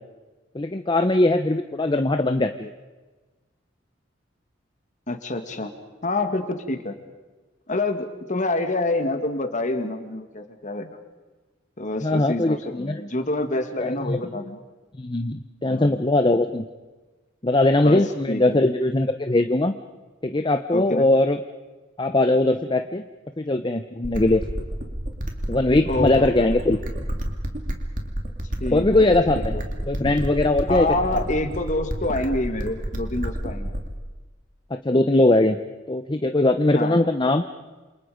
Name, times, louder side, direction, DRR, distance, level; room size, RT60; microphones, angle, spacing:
voice 1, 0.5-2.7 12.0-13.0 13.8-14.2 15.0-16.6 17.4-19.8 20.2-21.4 22.0-23.0 23.4-24.4 25.5-26.8 28.7-29.5 29.9-30.9 34.7-35.6 35.9-37.5, left 2 dB, 25° left, 8 dB, 0.7 m, -20 dB
voice 2, 5.1-5.7 6.0-7.0 7.7-10.9 11.8-14.6 15.7-16.0 17.8-18.6 20.7-21.1 25.9-26.6 28.6-29.6 30.7-33.7 36.7-37.0, left 2 dB, 40° left, 7 dB, 2.1 m, -27 dB
sound 1, 24.0-34.0, equal, 45° right, 2.7 m, -30 dB
28.0 x 27.5 x 5.1 m, 1.2 s
head